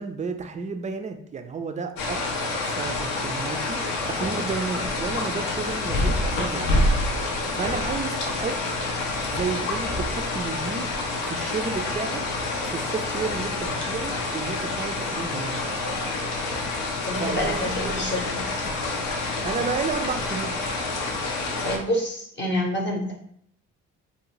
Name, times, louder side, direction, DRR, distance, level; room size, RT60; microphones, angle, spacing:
voice 1, 0.0-2.2 2.6-3.8 4.1-6.8 7.6-8.6 9.3-10.9 11.3-12.2 12.7-15.6 17.2-17.7 19.4-20.6, right 5 dB, 20° right, 7 dB, 0.4 m, -32 dB
sound 1, 2.0-21.8, left 2 dB, 85° left, 0.6 m, -27 dB
voice 2, 17.1-18.4 21.6-23.1, left 1 dB, 35° left, -1 dB, 0.8 m, -27 dB
2.6 x 2.0 x 3.0 m, 0.66 s
supercardioid pair, 55°, 33 cm